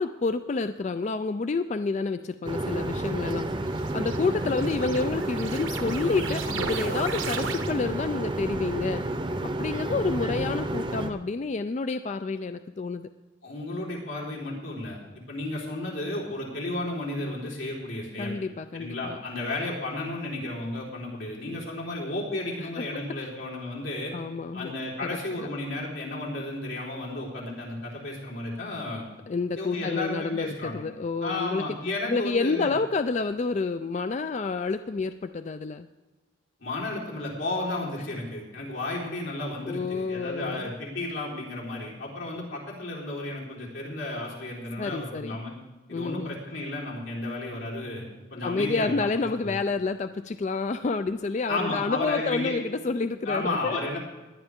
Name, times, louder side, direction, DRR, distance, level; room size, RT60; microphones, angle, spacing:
voice 1, 0.0-9.1 9.4-13.1 18.2-19.2 22.6-23.3 24.1-24.7 25.4-25.5 29.3-31.6 32.1-35.9 39.7-40.7 44.8-45.4 45.9-46.4 48.4-54.0, left 4 dB, 35° left, 10 dB, 0.3 m, -29 dB
sound 1, 2.4-11.1, right 1 dB, 25° right, 0.7 m, -31 dB
sound 2, 3.1-8.1, right 5 dB, 85° right, 1.3 m, -36 dB
voice 2, 13.4-15.0 15.3-18.4 18.7-24.2 24.5-29.0 29.6-30.8 31.2-32.7 36.6-45.5 45.9-49.1 49.4-49.6 51.5-52.5 53.3-54.0, left 2 dB, 80° left, -4 dB, 4.2 m, -33 dB
18.5 x 11.0 x 3.6 m, 1.2 s
head